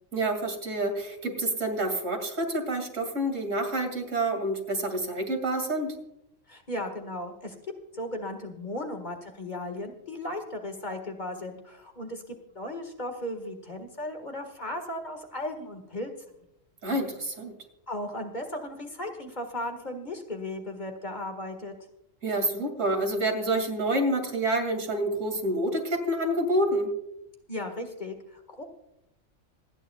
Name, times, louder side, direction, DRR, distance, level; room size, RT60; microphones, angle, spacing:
voice 1, 0.1-5.9 16.8-17.5 22.2-26.9, right 1 dB, 75° right, 4 dB, 2.9 m, -28 dB
voice 2, 6.5-7.5 7.9-16.1 17.9-21.7 27.5-28.6, left 1 dB, 35° left, 4 dB, 1.9 m, -36 dB
26.5 x 10.0 x 2.3 m, 0.82 s
omnidirectional pair, 1.3 m